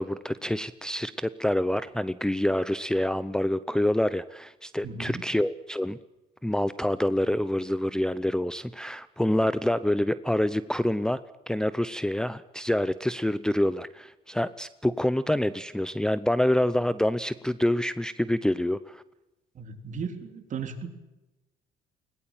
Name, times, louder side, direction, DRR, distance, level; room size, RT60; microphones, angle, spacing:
voice 1, 0.0-6.0 6.4-11.2 11.5-19.0, left 1 dB, 5° left, 13 dB, 0.7 m, -27 dB
voice 2, 4.8-5.3 19.6-20.9, right 5 dB, 45° right, 6 dB, 3.6 m, -36 dB
21.0 x 20.0 x 9.0 m, 1.0 s
cardioid pair, 110°, 17 cm